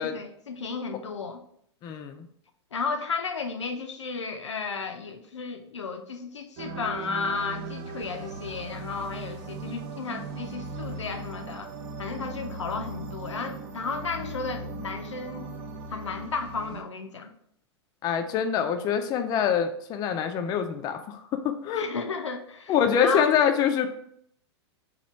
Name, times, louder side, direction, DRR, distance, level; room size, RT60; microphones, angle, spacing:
voice 1, 0.0-1.4 2.7-11.7 12.0-15.5 15.9-17.3 21.7-23.3, left 4 dB, 90° left, 6 dB, 0.5 m, -33 dB
voice 2, 1.8-2.3 18.0-21.9 22.7-23.9, left 8 dB, 25° left, 7 dB, 0.4 m, -25 dB
sound 1, 6.6-16.8, right 3 dB, 40° right, 0.5 m, -38 dB
2.9 x 2.3 x 4.2 m, 0.67 s
hypercardioid pair, 105°, 15 cm